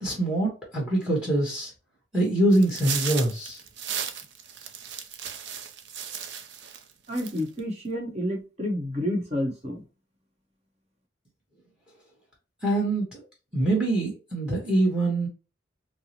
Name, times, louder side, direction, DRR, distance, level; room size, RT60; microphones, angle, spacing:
voice 1, 0.0-1.7 2.1-3.6 12.6-13.2 13.5-15.3, right 1 dB, 5° right, 1.1 m, -24 dB
sound 1, 2.5-6.8 7.1-7.6, right 8 dB, 60° right, 0.5 m, -35 dB
voice 2, 7.1-9.8, equal, 35° right, 1.0 m, -29 dB
4.4 x 2.0 x 2.9 m
head